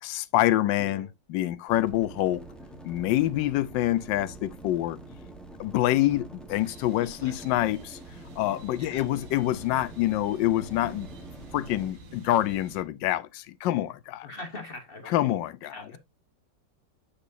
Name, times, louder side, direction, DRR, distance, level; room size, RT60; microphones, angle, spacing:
voice 1, 0.0-2.4 2.8-5.0 5.6-8.0 8.4-11.1 11.5-14.3 15.1-15.7, left 14 dB, 80° left, 1.2 m, -26 dB
voice 2, 0.8-1.1 6.9-7.3 8.8-9.0 14.2-15.3 15.6-16.0, left 2 dB, 40° left, 0.9 m, -42 dB
sound 1, 1.7-11.9, right 2 dB, ahead, 0.8 m, -45 dB
sound 2, 6.5-12.8, right 2 dB, 80° right, 2.2 m, -50 dB
8.5 x 5.0 x 2.6 m
omnidirectional pair, 2.0 m